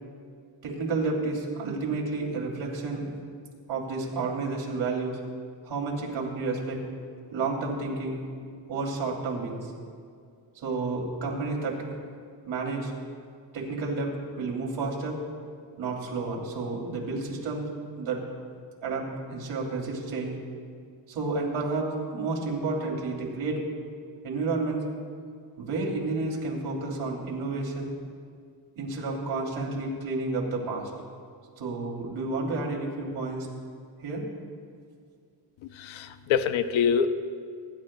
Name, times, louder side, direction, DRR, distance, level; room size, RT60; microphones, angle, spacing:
voice 1, 0.6-3.1 3.7-5.2 5.6-6.8 7.3-8.2 8.7-9.7 10.6-11.8 12.5-12.9 13.5-14.1 14.4-15.2 15.8-17.7 18.0-18.2 18.8-20.4 21.1-23.6 24.2-24.9 25.6-27.9 28.8-30.9 31.6-33.5 34.0-34.2, right 3 dB, 85° right, -1 dB, 2.8 m, -30 dB
voice 2, 35.8-37.1, left 7 dB, 85° left, 10 dB, 0.7 m, -25 dB
24.5 x 11.5 x 2.2 m, 2.2 s
cardioid pair, 155°, 45 cm